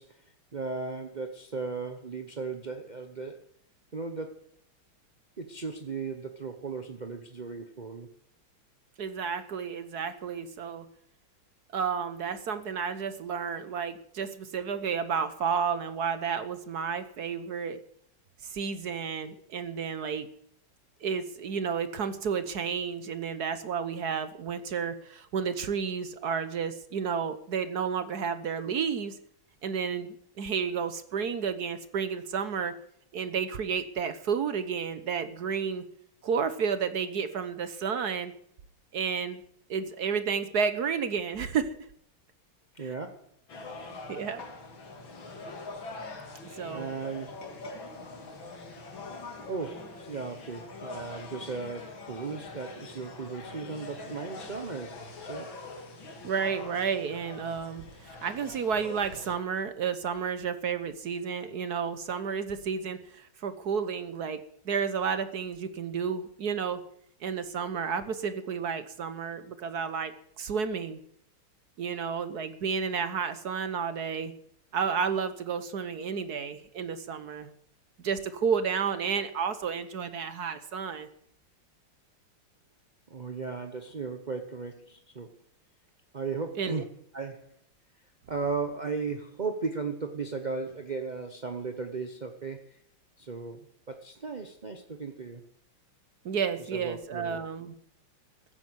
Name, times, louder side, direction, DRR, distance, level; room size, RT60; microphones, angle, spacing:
voice 1, 0.0-3.4 3.9-4.4 5.4-8.1 42.7-43.2 46.7-47.6 49.5-55.5 83.1-85.3 86.1-87.5 88.3-92.8 93.2-95.4 96.7-97.4, right 4 dB, 40° right, 6 dB, 0.6 m, -36 dB
voice 2, 9.0-10.9 11.7-17.8 18.4-20.3 21.0-29.1 29.6-32.7 33.1-35.8 36.2-38.3 38.9-39.4 39.7-41.8 42.8-42.9 44.1-44.4 46.6-46.9 56.2-66.8 67.2-71.0 71.8-74.3 74.7-77.5 78.0-81.1 86.6-86.8 96.2-97.7, right 6 dB, 55° right, 12 dB, 1.3 m, -31 dB
sound 1, 43.5-59.4, left 3 dB, 60° left, 3.1 m, -43 dB
15.0 x 9.2 x 8.0 m, 0.67 s
omnidirectional pair, 2.4 m